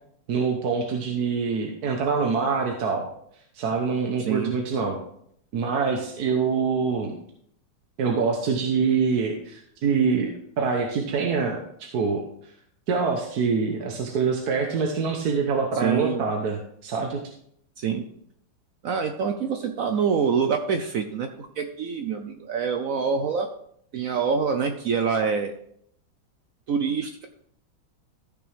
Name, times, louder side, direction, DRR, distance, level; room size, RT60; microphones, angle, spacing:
voice 1, 0.3-3.0 3.5-5.0 5.5-7.2 8.0-12.2 12.9-17.2, right 5 dB, 55° right, 2 dB, 1.4 m, -25 dB
voice 2, 15.8-16.2 17.8-18.0 18.8-23.5 23.9-25.5 26.7-27.3, right 6 dB, 85° right, 6 dB, 0.7 m, -26 dB
14.0 x 6.0 x 3.4 m, 0.69 s
omnidirectional pair, 2.3 m